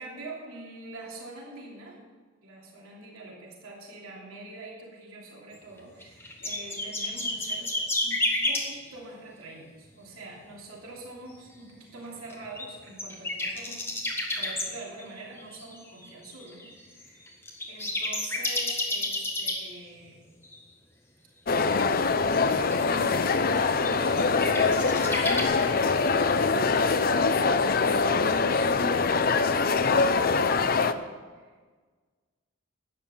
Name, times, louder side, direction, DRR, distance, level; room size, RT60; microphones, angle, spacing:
voice 1, 0.0-2.0 2.4-7.7 8.0-13.8 14.4-17.4 17.7-20.2 22.4-26.2 27.3-28.7 30.3-31.5, right 2 dB, 85° right, -2 dB, 3.0 m, -45 dB
sound 1, 5.8-8.6 12.3-14.6 15.0-19.6 20.4-20.6 22.2-22.7 23.8-25.4, left 2 dB, 10° left, 1.6 m, -30 dB
sound 2, 21.5-30.9, left 4 dB, 45° left, 0.5 m, -23 dB
12.0 x 9.0 x 7.2 m, 1.5 s
head